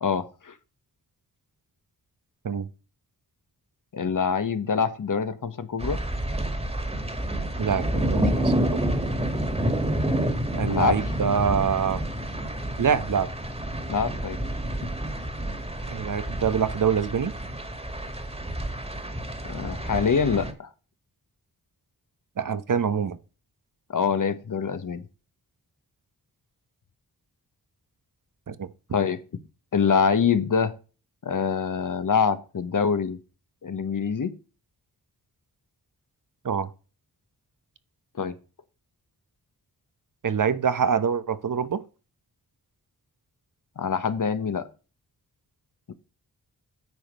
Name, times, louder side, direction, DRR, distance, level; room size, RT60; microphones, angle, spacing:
voice 1, 0.0-0.5 3.9-6.0 10.6-11.0 13.9-14.5 14.8-14.9 19.4-20.7 23.9-25.0 28.9-29.2 29.7-30.7 31.2-33.2 33.6-34.3 38.1-38.3 43.8-44.7 45.9-46.0, left 6 dB, 55° left, 1.3 m, -25 dB
sound 1, 5.8-20.5, right 1 dB, 15° right, 2.0 m, -29 dB
voice 2, 7.6-8.8 10.5-12.0 12.8-13.3 15.9-17.3 22.4-23.2 28.5-28.7 36.4-36.7 40.2-41.8, right 7 dB, 55° right, 1.0 m, -25 dB
9.5 x 5.0 x 5.4 m
cardioid pair, 55°, 38 cm